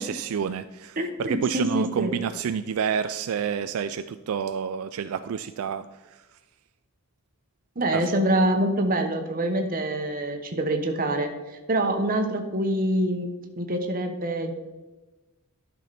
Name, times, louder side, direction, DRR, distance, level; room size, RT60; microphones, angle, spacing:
voice 1, 0.0-5.9 7.9-8.0, right 7 dB, 75° right, 11 dB, 0.4 m, -29 dB
voice 2, 1.0-2.1 7.8-11.3 11.7-13.3 13.6-14.5, right 1 dB, 40° right, 5 dB, 1.2 m, -25 dB
12.0 x 6.0 x 4.2 m, 1.2 s
head